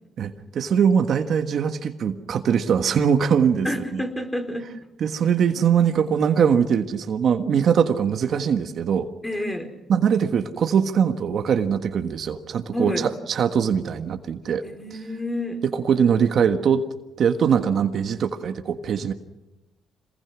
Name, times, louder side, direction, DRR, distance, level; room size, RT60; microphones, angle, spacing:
voice 1, 0.2-4.0 5.0-9.1 9.9-14.6 15.6-16.9 17.2-19.1, right 7 dB, 60° right, 7 dB, 1.5 m, -22 dB
voice 2, 3.6-4.7 9.2-9.7 12.7-13.1 14.6-15.6, left 1 dB, 10° left, 6 dB, 4.0 m, -29 dB
26.0 x 20.5 x 6.2 m, 0.98 s
cardioid pair, 90°, 0 cm